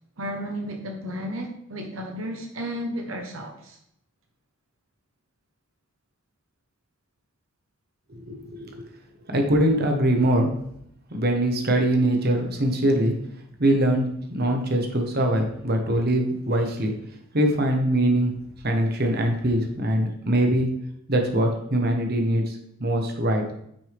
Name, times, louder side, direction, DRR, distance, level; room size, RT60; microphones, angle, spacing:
voice 1, 0.2-3.8, equal, 75° right, 3 dB, 1.2 m, -33 dB
voice 2, 8.3-8.9 9.3-10.5 11.1-13.1 13.6-16.9 17.3-18.3 18.6-20.7 21.1-23.5, right 1 dB, 50° right, 3 dB, 1.3 m, -22 dB
9.8 x 6.4 x 3.5 m, 0.73 s
head